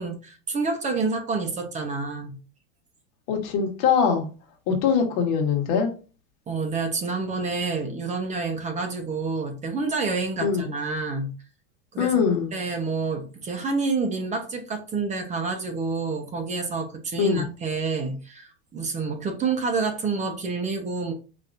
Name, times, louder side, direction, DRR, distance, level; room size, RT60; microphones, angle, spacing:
voice 1, 0.0-2.4 6.5-11.3 11.9-21.1, right 4 dB, 25° right, 4 dB, 1.0 m, -28 dB
voice 2, 3.3-4.3 4.7-5.9 10.4-10.7 12.0-12.5 17.2-17.4, left 6 dB, 60° left, 3 dB, 1.4 m, -22 dB
5.1 x 2.9 x 2.6 m, 0.34 s
supercardioid pair, 125°, 30 cm